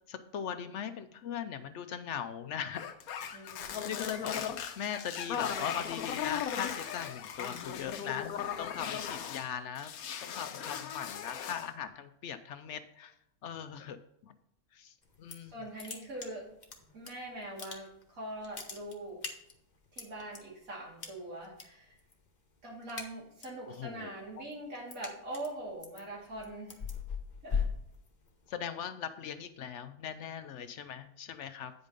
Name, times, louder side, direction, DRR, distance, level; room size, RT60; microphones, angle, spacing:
voice 1, 0.1-2.8 3.2-3.5 3.8-4.5 4.8-9.9 10.2-13.1 13.4-14.4 14.7-15.6 23.7-24.1 28.5-31.7, left 8 dB, 65° left, 10 dB, 0.8 m, -40 dB
sound 1, 2.7-9.5 9.8-11.7, left 8 dB, 85° left, 1.2 m, -38 dB
voice 2, 3.3-4.0 15.5-16.4 16.9-19.2 19.9-22.0 22.6-26.8 27.4-27.6, right 1 dB, 70° right, -3 dB, 2.9 m, -43 dB
sound 2, 15.0-15.5 15.8-17.1 17.4-18.1 18.4-20.4 21.0-21.6 21.9-22.3 22.6-23.6 24.0-28.5, left 6 dB, 35° left, 1.1 m, -39 dB
9.0 x 5.3 x 5.2 m, 0.76 s
omnidirectional pair, 1.5 m